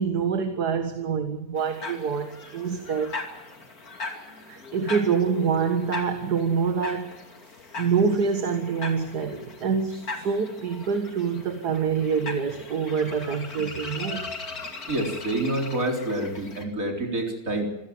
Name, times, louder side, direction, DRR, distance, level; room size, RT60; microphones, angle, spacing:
voice 1, 0.0-3.2 4.5-7.2 7.8-14.2, right 6 dB, 65° right, 7 dB, 2.1 m, -26 dB
sound 1, 1.6-16.6, left 3 dB, 55° left, 3.2 m, -39 dB
voice 2, 14.9-17.7, right 1 dB, 50° right, 2 dB, 4.4 m, -27 dB
26.5 x 17.0 x 7.2 m, 0.97 s
omnidirectional pair, 1.9 m